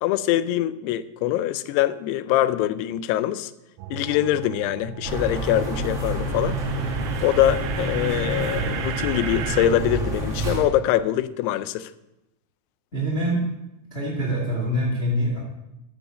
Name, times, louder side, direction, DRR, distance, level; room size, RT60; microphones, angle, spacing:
voice 1, 0.0-3.5 3.9-6.6 7.2-11.9, left 12 dB, 90° left, 2.6 m, -23 dB
sound 1, 3.8-9.7, right 9 dB, 80° right, 2.4 m, -36 dB
sound 2, 5.0-10.6, right 2 dB, 50° right, 0.8 m, -28 dB
voice 2, 12.9-13.5 13.9-15.4, equal, 35° left, 0.9 m, -24 dB
13.0 x 7.1 x 5.1 m
omnidirectional pair, 4.6 m